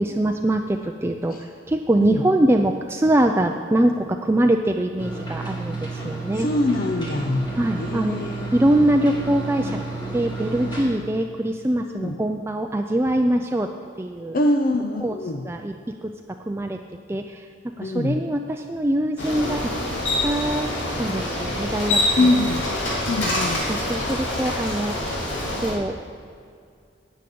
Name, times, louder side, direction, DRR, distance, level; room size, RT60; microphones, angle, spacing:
voice 1, 0.0-6.5 7.6-8.3 8.5-9.8 10.1-13.7 14.0-14.5 15.0-16.1 16.5-16.8 17.1-19.7 20.2-20.7 21.0-22.4 22.6-23.0 23.7-25.0 25.6-26.0, right 1 dB, 15° right, 4 dB, 0.4 m, -23 dB
sound 1, 5.0-10.8, right 3 dB, 25° left, 2.1 m, -31 dB
voice 2, 6.0-7.5 7.8-8.5 11.9-12.2 14.3-15.4 17.8-18.2 22.2-22.7 23.1-23.7, left 2 dB, 50° left, 4 dB, 0.6 m, -24 dB
Bicycle, 19.2-25.7, left 1 dB, 85° left, 2.5 m, -26 dB
10.5 x 6.6 x 8.5 m, 2.2 s
head